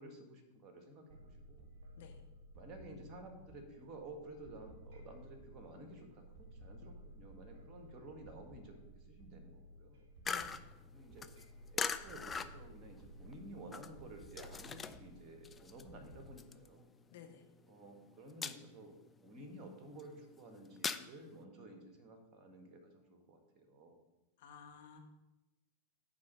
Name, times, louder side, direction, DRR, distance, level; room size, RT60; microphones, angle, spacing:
voice 1, 0.0-1.7 2.5-10.1 10.9-11.3 11.7-16.9 17.7-18.9 19.2-24.0, right 1 dB, 30° right, 5 dB, 1.6 m, -53 dB
sound 1, 1.1-16.3, right 1 dB, 45° right, 1.3 m, -56 dB
sound 2, 10.2-15.1 15.4-17.3 17.7-18.0 18.3-18.9 19.4-21.0, left 5 dB, 15° left, 0.4 m, -41 dB
voice 2, 17.1-17.4 24.4-25.0, left 7 dB, 55° left, 3 dB, 1.0 m, -53 dB
9.4 x 3.7 x 6.3 m, 0.99 s
figure-of-eight pair, 90°, 0 cm